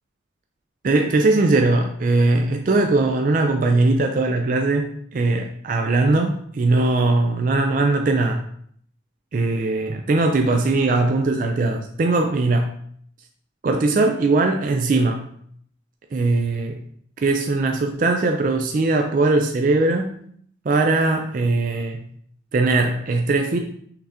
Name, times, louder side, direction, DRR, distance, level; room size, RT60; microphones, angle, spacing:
voice 1, 0.8-8.4 9.3-12.7 13.6-15.3 16.1-16.8 17.2-20.2 20.7-22.1 22.5-23.6, right 2 dB, 45° right, 4 dB, 0.3 m, -20 dB
5.7 x 3.4 x 2.7 m, 0.63 s
head